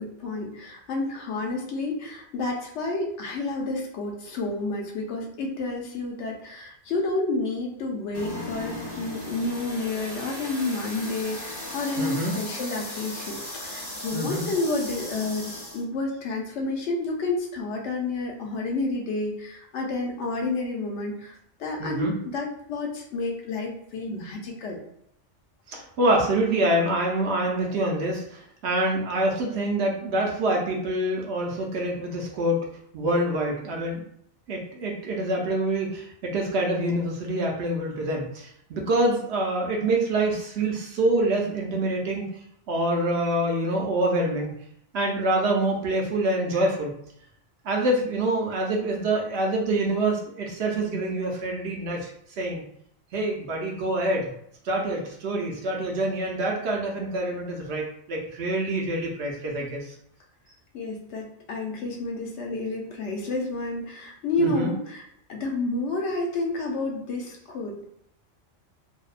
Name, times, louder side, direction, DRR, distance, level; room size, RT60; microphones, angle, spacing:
voice 1, 0.0-24.8 60.7-67.9, left 2 dB, 70° left, 0 dB, 0.9 m, -30 dB
sound 1, 8.1-15.8, left 1 dB, 25° left, 0.6 m, -37 dB
voice 2, 12.0-12.3 14.1-14.5 21.8-22.1 25.7-32.7 32.9-34.0 34.5-36.1 36.3-42.2 42.7-44.5 44.9-46.9 47.6-52.1 52.4-52.6 53.1-54.2 54.6-59.9 64.4-64.7, right 1 dB, 65° right, 0 dB, 0.8 m, -26 dB
2.6 x 2.1 x 2.4 m, 0.71 s
omnidirectional pair, 1.3 m